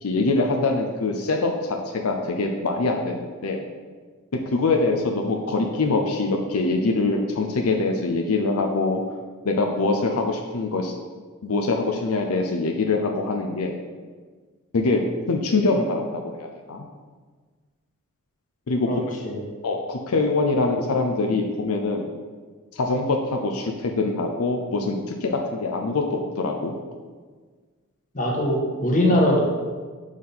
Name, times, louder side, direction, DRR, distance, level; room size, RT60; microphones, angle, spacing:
voice 1, 0.0-3.7 4.5-9.0 9.4-10.9 11.4-13.8 14.7-15.0 15.3-16.9 18.7-19.2 19.6-22.1 22.7-26.7, left 3 dB, 80° left, 3 dB, 0.6 m, -24 dB
voice 2, 28.1-29.4, left 1 dB, 40° left, -1 dB, 1.4 m, -21 dB
5.6 x 4.8 x 5.5 m, 1.5 s
head